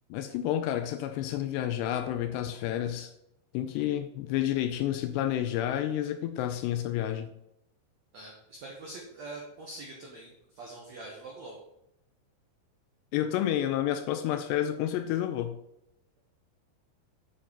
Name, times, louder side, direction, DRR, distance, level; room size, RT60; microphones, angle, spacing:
voice 1, 0.1-3.1 3.5-7.3 13.1-15.6, left 11 dB, 80° left, 2.5 m, -30 dB
voice 2, 8.1-11.6, right 2 dB, 75° right, 1.6 m, -44 dB
9.3 x 4.9 x 5.7 m
omnidirectional pair, 5.3 m